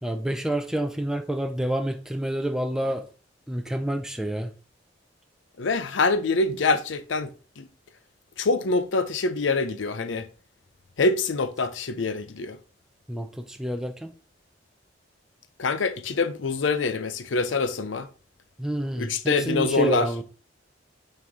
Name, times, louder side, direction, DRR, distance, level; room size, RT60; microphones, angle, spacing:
voice 1, 0.0-3.0 3.5-4.5 13.1-14.1 18.6-20.2, right 1 dB, 5° right, 0.4 m, -28 dB
voice 2, 5.6-7.7 8.4-10.3 11.0-12.6 15.6-18.1 19.0-20.1, left 3 dB, 90° left, 0.6 m, -25 dB
6.0 x 4.3 x 3.6 m
head